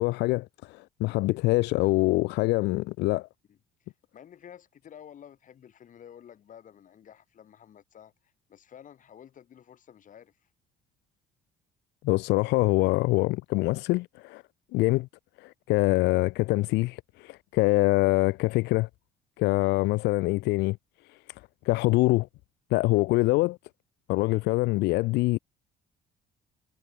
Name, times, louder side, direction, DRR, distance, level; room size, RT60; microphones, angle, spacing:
voice 1, 0.0-3.3 12.0-14.4 14.7-15.1 15.4-18.9 19.4-20.8 21.0-22.3 22.7-23.6 24.1-25.4, left 21 dB, 85° left, 0.6 m, -25 dB
voice 2, 3.5-10.5, left 9 dB, 50° left, 4.6 m, -51 dB
cardioid pair, 110°, 17 cm